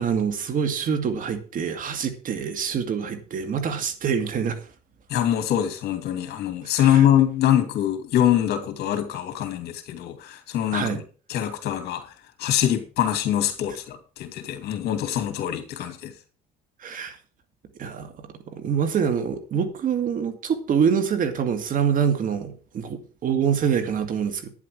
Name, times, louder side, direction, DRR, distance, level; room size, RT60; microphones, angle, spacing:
voice 1, 0.0-4.6 6.8-7.0 10.7-11.0 16.8-17.2 17.8-18.1 18.5-24.5, right 7 dB, 55° right, 2.3 m, -25 dB
voice 2, 5.1-11.0 11.3-12.1 12.4-16.1, left 11 dB, 75° left, 2.7 m, -24 dB
11.0 x 10.0 x 4.7 m
cardioid pair, 110°, 17 cm